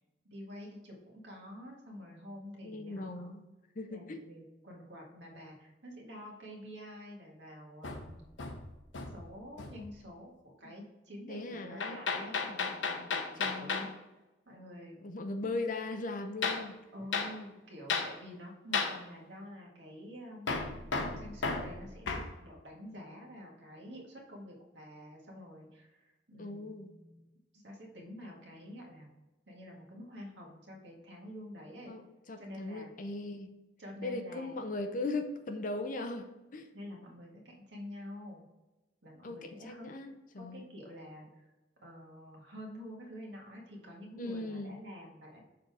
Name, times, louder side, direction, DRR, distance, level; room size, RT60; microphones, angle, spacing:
voice 1, 0.3-3.3 3.9-8.2 9.1-10.3 10.6-13.9 14.5-15.0 16.9-20.6 21.1-27.3 27.5-29.1 29.5-31.9 32.4-32.9 33.8-34.6 36.7-38.4 39.0-39.9 40.4-41.5 41.8-45.4, equal, 70° right, -1 dB, 1.8 m, -48 dB
voice 2, 2.6-3.5 3.8-4.2 10.6-10.8 11.3-12.0 13.4-13.9 15.0-16.8 26.4-26.9 31.8-32.0 32.3-33.5 34.0-36.7 39.2-40.7 44.2-44.8, left 2 dB, 45° left, 6 dB, 0.6 m, -38 dB
Hammer, 7.8-9.3 9.6-9.9 11.8-13.9 16.4-16.7 17.1-17.3 17.9-18.1 18.7-19.0 20.5-22.3, left 4 dB, 85° left, 0.8 m, -34 dB
6.6 x 4.0 x 4.7 m, 1.0 s
head